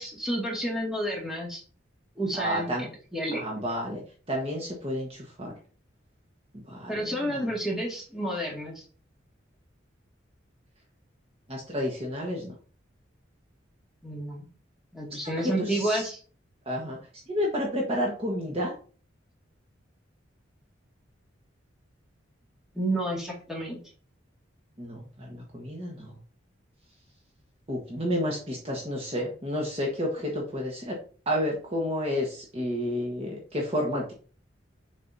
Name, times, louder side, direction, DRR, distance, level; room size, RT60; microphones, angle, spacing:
voice 1, 0.0-1.6 2.2-3.6 6.9-8.8 14.0-14.5 14.9-16.2 22.7-23.8, right 1 dB, ahead, -3 dB, 2.0 m, -30 dB
voice 2, 2.4-2.9 3.3-4.0 4.3-5.5 6.5-7.5 11.5-12.5 15.4-16.1 16.7-17.0 17.3-18.7 24.8-26.1 27.7-30.9 31.3-34.1, equal, 30° right, -2 dB, 1.3 m, -30 dB
7.1 x 5.2 x 2.7 m, 0.39 s
head